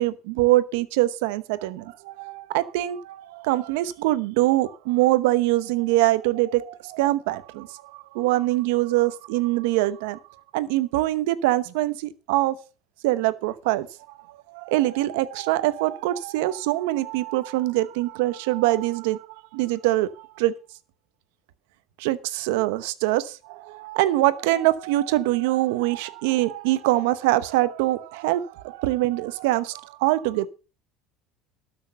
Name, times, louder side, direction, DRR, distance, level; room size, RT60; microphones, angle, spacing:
voice 1, 0.0-10.2 10.5-12.6 13.0-13.9 14.3-19.3 19.5-20.6 22.0-30.5, right 16 dB, 85° right, 0.9 m, -24 dB
12.5 x 6.4 x 6.8 m
supercardioid pair, 105°, 0 cm